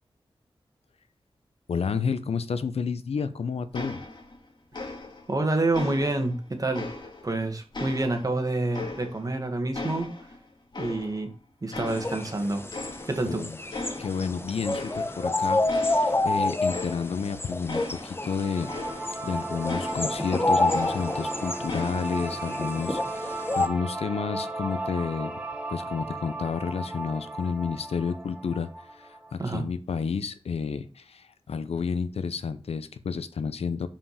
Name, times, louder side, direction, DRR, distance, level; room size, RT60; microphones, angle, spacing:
voice 1, 1.7-4.0 13.2-13.6 14.0-18.7 19.2-25.4 25.7-33.9, left 5 dB, 90° left, 12 dB, 0.7 m, -31 dB
sound 1, 3.7-4.4 4.7-5.4 5.7-7.4 7.7-9.4 9.7-11.4 11.7-12.4 12.7-13.4 13.7-14.3 14.7-15.3 15.7-19.3 19.7-21.3 21.7-22.3, left 2 dB, 50° left, 2.1 m, -38 dB
voice 2, 5.3-6.9 7.2-10.1 10.8-11.3 11.6-12.6 13.1-13.4 29.4-29.7, right 2 dB, 35° right, 5 dB, 1.8 m, -27 dB
sound 2, 11.9-23.7, left 2 dB, 25° left, 0.9 m, -29 dB
sound 3, 18.3-29.3, right 2 dB, 15° right, 1.4 m, -35 dB
5.6 x 5.2 x 6.6 m, 0.36 s
wide cardioid pair, 70°, 10 cm